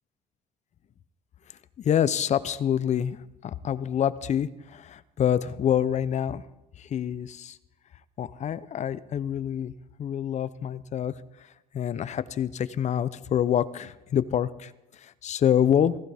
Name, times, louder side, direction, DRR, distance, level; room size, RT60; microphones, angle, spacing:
voice 1, 1.8-6.4 6.8-7.6 8.2-9.7 10.0-16.0, left 9 dB, 45° left, 15 dB, 0.6 m, -27 dB
16.0 x 15.0 x 3.5 m, 0.95 s
cardioid pair, 110°, 17 cm